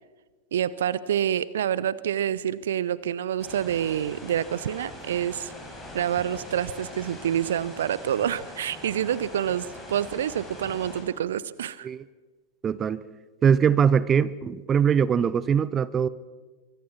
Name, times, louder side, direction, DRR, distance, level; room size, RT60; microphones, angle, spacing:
voice 1, 0.5-5.5 5.9-11.9, right 10 dB, 60° right, 19 dB, 0.7 m, -27 dB
sound 1, 3.4-11.0, left 1 dB, 10° left, 7.4 m, -42 dB
voice 2, 12.6-13.0 13.4-16.1, right 7 dB, 25° right, 19 dB, 0.8 m, -22 dB
24.5 x 24.0 x 6.1 m, 1.3 s
figure-of-eight pair, 90°, 0 cm